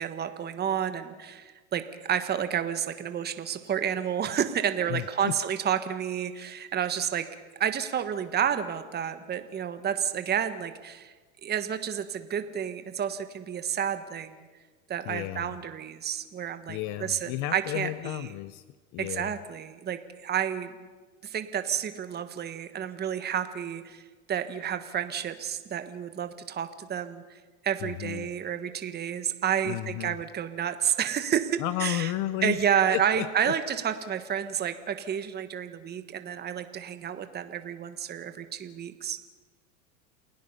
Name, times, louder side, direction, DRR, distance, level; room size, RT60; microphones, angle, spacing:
voice 1, 0.0-7.3 7.6-11.1 11.4-14.5 14.9-18.3 19.0-20.7 21.2-24.0 24.3-27.4 27.6-32.1 32.4-39.2, right 8 dB, 20° right, 9 dB, 1.3 m, -30 dB
voice 2, 4.9-5.3 15.0-15.6 16.7-18.6 18.9-19.3 27.8-28.3 29.6-30.2 31.6-32.6 32.9-33.5, left 15 dB, 45° left, 14 dB, 0.7 m, -33 dB
28.5 x 17.0 x 5.6 m, 1.3 s
supercardioid pair, 120°, 43 cm